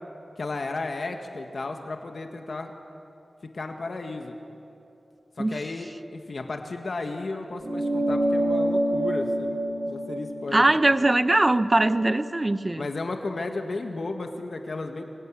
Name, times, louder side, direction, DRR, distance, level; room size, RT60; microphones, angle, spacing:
voice 1, 0.4-2.7 3.5-4.3 5.4-9.6 9.8-10.6 12.8-15.0, left 3 dB, 70° left, 4 dB, 1.8 m, -33 dB
sound 1, 7.6-12.4, right 1 dB, 60° right, 4.2 m, -28 dB
voice 2, 10.5-12.9, right 2 dB, 30° right, 13 dB, 0.9 m, -21 dB
25.0 x 18.0 x 9.7 m, 2.8 s
wide cardioid pair, 60°, 0 cm